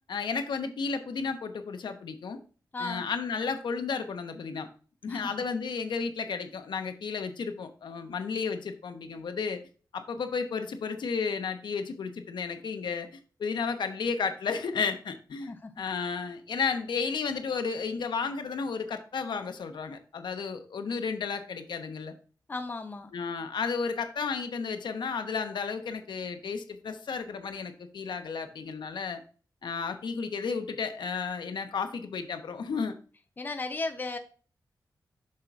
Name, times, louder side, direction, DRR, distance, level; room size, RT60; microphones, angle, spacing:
voice 1, 0.1-2.4 2.8-4.7 5.0-9.6 9.9-15.5 15.8-22.1 23.1-29.2 29.6-33.0, left 5 dB, 85° left, 7 dB, 1.0 m, -33 dB
voice 2, 2.7-3.1 5.1-5.3 15.4-15.7 22.5-23.1 33.4-34.2, left 3 dB, 25° left, 6 dB, 0.8 m, -35 dB
7.3 x 6.1 x 2.5 m, 0.38 s
wide cardioid pair, 170°, 8 cm